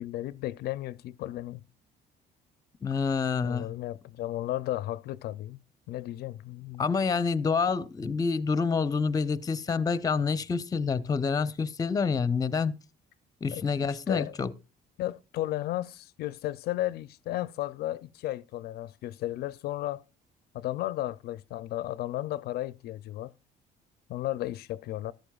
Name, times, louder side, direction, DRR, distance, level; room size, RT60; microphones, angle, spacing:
voice 1, 0.0-1.6 3.4-5.6 5.9-6.9 13.5-14.4 15.0-20.0 20.5-23.3 24.1-25.1, left 14 dB, 70° left, 0.4 m, -34 dB
voice 2, 2.8-3.7 6.8-12.8 13.4-14.5, left 5 dB, 20° left, 0.6 m, -27 dB
13.5 x 12.0 x 2.3 m
cardioid pair, 110°, 17 cm